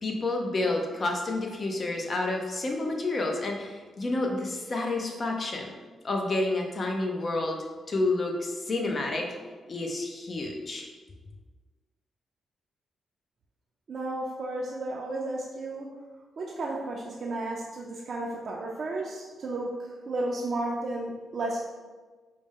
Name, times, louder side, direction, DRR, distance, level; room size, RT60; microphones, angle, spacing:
voice 1, 0.0-5.7 6.0-7.6 7.9-10.9, left 2 dB, 40° left, 2 dB, 0.7 m, -29 dB
voice 2, 13.9-15.9 16.4-19.7 20.1-21.7, right 2 dB, 55° right, -4 dB, 0.5 m, -33 dB
4.8 x 2.1 x 3.6 m, 1.4 s
cardioid pair, 80°, 0 cm